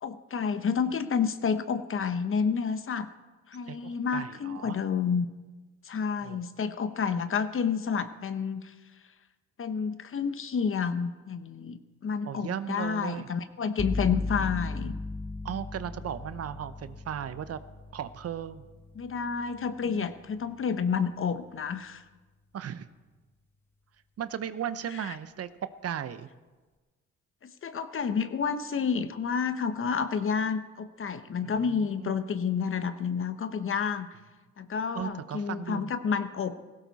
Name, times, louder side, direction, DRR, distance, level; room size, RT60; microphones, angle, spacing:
voice 1, 0.0-3.1 3.5-5.3 5.8-8.7 9.6-15.0 18.9-22.0 24.9-25.2 27.4-34.1 34.6-36.6, left 6 dB, 45° left, 11 dB, 1.0 m, -30 dB
voice 2, 3.7-4.8 6.2-6.5 12.2-13.3 15.4-17.6 17.9-18.7 19.8-20.0 22.5-22.9 24.2-26.3 31.4-32.1 34.9-35.9, right 9 dB, 55° right, 13 dB, 0.8 m, -36 dB
sound 1, 13.8-21.5, left 2 dB, 5° left, 0.9 m, -38 dB
17.5 x 16.0 x 4.1 m, 1.3 s
cardioid pair, 90°, 30 cm